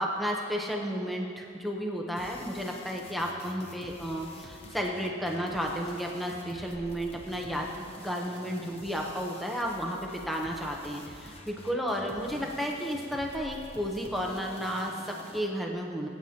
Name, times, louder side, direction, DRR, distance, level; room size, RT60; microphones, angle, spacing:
voice 1, 0.0-16.1, equal, ahead, -1 dB, 0.7 m, -33 dB
sound 1, 2.2-15.4, left 1 dB, 30° left, 0.9 m, -48 dB
21.0 x 9.2 x 2.8 m, 2.4 s
head